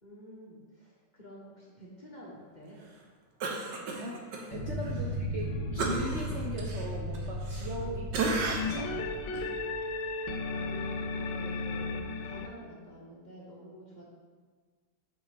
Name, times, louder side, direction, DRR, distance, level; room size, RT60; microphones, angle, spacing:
voice 1, 0.0-2.8 5.0-5.2 7.8-8.0 10.5-11.9 12.2-14.1, equal, 35° left, -5 dB, 0.9 m, -49 dB
Cough, 3.4-4.4 4.8-5.0 5.8-7.8 8.1-8.8 9.3-9.5, right 3 dB, 90° right, 1.5 m, -33 dB
voice 2, 3.6-4.2 4.5-9.1, right 1 dB, 60° right, -2 dB, 0.8 m, -40 dB
sound 1, 4.5-10.3, equal, 50° left, 1.8 m, -36 dB
sound 2, 5.4-6.7 8.6-12.5, left 3 dB, 85° left, 1.2 m, -35 dB
6.5 x 5.6 x 3.4 m, 1.5 s
omnidirectional pair, 1.8 m